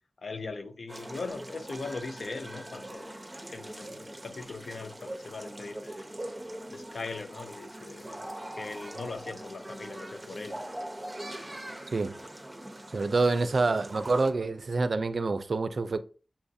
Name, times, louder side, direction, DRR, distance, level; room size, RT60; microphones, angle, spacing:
voice 1, 0.2-3.2 3.5-6.1 6.7-8.2 8.6-10.6, left 3 dB, 85° left, 0.5 m, -40 dB
sound 1, 0.9-14.3, right 1 dB, 25° right, 0.8 m, -42 dB
voice 2, 12.9-16.0, right 3 dB, 75° right, 0.4 m, -27 dB
7.1 x 2.4 x 2.6 m
cardioid pair, 40°, 0 cm